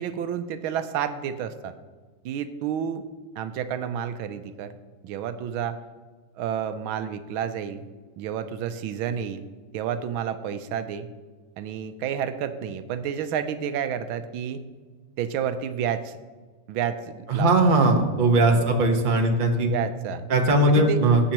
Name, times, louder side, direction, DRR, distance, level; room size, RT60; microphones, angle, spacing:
voice 1, 0.0-1.7 2.2-3.0 3.4-4.7 5.0-5.8 6.4-7.9 8.2-9.5 9.7-11.1 11.6-14.6 15.2-16.2 16.7-17.7 18.5-18.7 19.7-20.2 20.7-21.0, right 8 dB, 85° right, 10 dB, 1.5 m, -30 dB
voice 2, 17.3-19.7 20.3-21.3, right 2 dB, 30° right, 3 dB, 1.1 m, -19 dB
18.0 x 8.4 x 3.0 m, 1.4 s
omnidirectional pair, 2.2 m